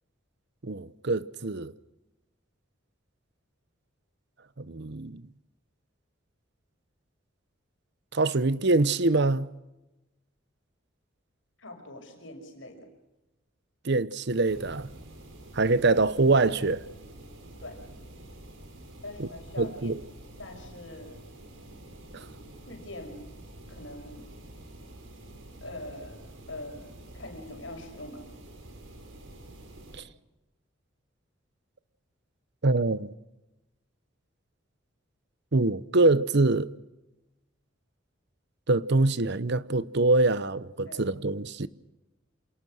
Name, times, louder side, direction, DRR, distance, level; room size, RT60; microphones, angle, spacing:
voice 1, 0.6-1.7 4.6-5.2 8.1-9.5 13.8-14.9 15.5-16.8 19.2-19.3 19.6-20.0 22.1-22.2 32.6-33.1 35.5-36.7 38.7-41.7, right 2 dB, 60° right, 0.9 m, -24 dB
voice 2, 11.6-12.9 17.6-17.9 19.0-20.0 20.4-21.2 22.7-23.2 23.7-24.2 25.6-26.2 26.5-28.2 40.8-41.0, left 1 dB, 70° left, 6.2 m, -43 dB
sound 1, 14.5-30.0, right 1 dB, 75° right, 4.7 m, -48 dB
28.0 x 18.5 x 6.5 m
head